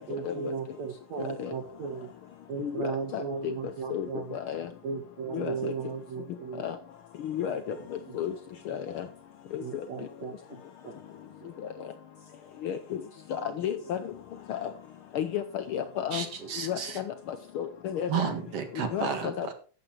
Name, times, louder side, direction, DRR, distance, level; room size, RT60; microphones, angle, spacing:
voice 1, 0.1-2.1 2.5-4.4 4.8-6.7 7.4-8.2 9.6-11.0 11.4-11.5 13.4-13.8, right 5 dB, 70° right, 5 dB, 2.6 m, -37 dB
voice 2, 2.6-3.5 3.9-4.1 4.3-4.7 5.3-5.7 6.6-6.8 7.2-7.8 8.1-8.3 8.7-9.1 9.5-9.6 12.6-13.0 13.3-14.0 14.5-14.7 15.1-16.2 16.6-18.3 18.9-19.5, left 9 dB, 85° left, 10 dB, 1.1 m, -32 dB
voice 3, 16.1-17.0 18.1-19.5, right 7 dB, 55° right, 6 dB, 2.6 m, -32 dB
12.5 x 8.5 x 4.5 m, 0.38 s
omnidirectional pair, 3.4 m